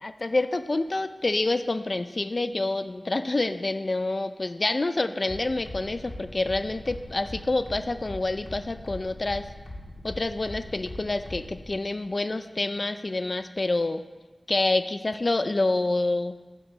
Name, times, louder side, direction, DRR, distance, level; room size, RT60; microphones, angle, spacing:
voice 1, 0.0-9.5 10.0-14.0 14.5-16.4, left 2 dB, 50° left, 10 dB, 0.5 m, -27 dB
sound 1, 5.3-11.6, left 1 dB, 85° left, 1.9 m, -40 dB
9.0 x 7.2 x 7.6 m, 1.3 s
wide cardioid pair, 65°, 0 cm